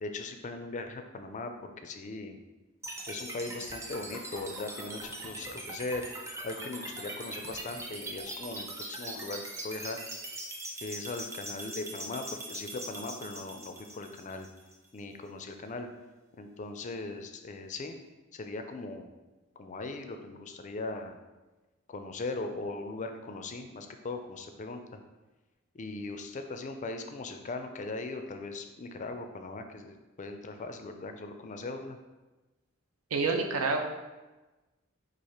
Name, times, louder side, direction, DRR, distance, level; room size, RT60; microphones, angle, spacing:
voice 1, 0.0-2.4 3.1-6.1 6.4-10.0 10.8-14.5 14.9-15.9 16.4-18.0 18.3-19.1 19.6-21.2 21.9-24.8 25.7-32.0, left 3 dB, 35° left, 7 dB, 0.4 m, -39 dB
sound 1, 2.8-14.9, right 1 dB, 15° right, 0.5 m, -41 dB
voice 2, 33.1-33.9, right 4 dB, 75° right, 4 dB, 0.5 m, -28 dB
4.3 x 2.5 x 4.8 m, 1.1 s
head